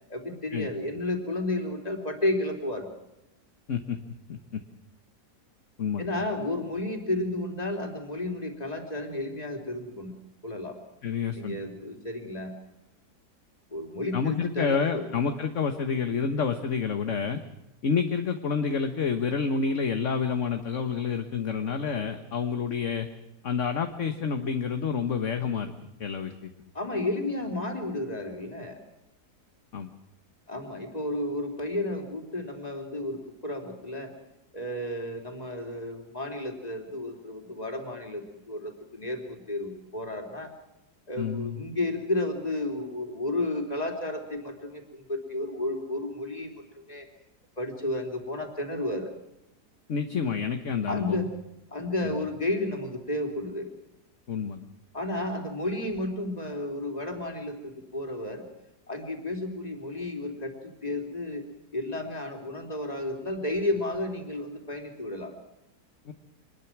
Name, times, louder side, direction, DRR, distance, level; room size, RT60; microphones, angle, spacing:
voice 1, 0.1-2.9 6.0-10.1 10.4-10.8 11.3-12.5 13.7-15.1 26.7-28.8 30.5-34.1 34.5-40.5 41.1-47.1 47.6-49.1 50.9-51.3 51.7-53.7 54.9-58.5 58.9-60.5 60.8-61.4 61.7-65.3, left 1 dB, 25° left, 3 dB, 3.7 m, -32 dB
voice 2, 4.3-4.6 5.8-6.0 11.0-11.6 14.1-17.4 17.8-23.1 23.4-25.7 26.0-26.5 29.7-29.9 41.2-41.6 49.9-51.3 52.0-52.3 54.3-54.6 66.0-66.1, left 6 dB, 50° left, 7 dB, 1.5 m, -29 dB
25.0 x 20.5 x 6.1 m, 0.90 s
omnidirectional pair, 1.8 m